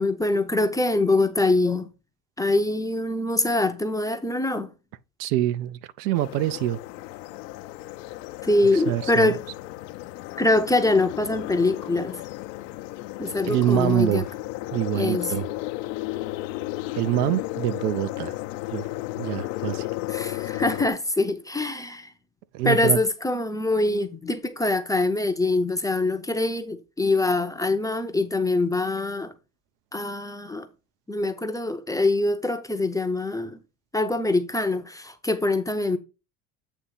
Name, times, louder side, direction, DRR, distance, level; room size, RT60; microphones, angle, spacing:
voice 1, 0.0-1.9 2.4-4.7 8.4-9.4 10.4-12.2 13.2-14.2 14.9-15.3 20.1-22.1 22.6-29.3 29.9-30.7 31.1-33.6 33.9-36.0, left 2 dB, 10° left, 0.5 m, -24 dB
voice 2, 5.2-6.8 8.7-9.3 13.5-14.3 14.7-15.5 16.9-18.4 18.7-18.9 19.2-19.9 22.5-23.0, right 14 dB, 80° right, 0.7 m, -25 dB
sound 1, 6.1-20.9, left 18 dB, 85° left, 0.7 m, -34 dB
8.3 x 3.0 x 5.5 m
supercardioid pair, 115°, 48 cm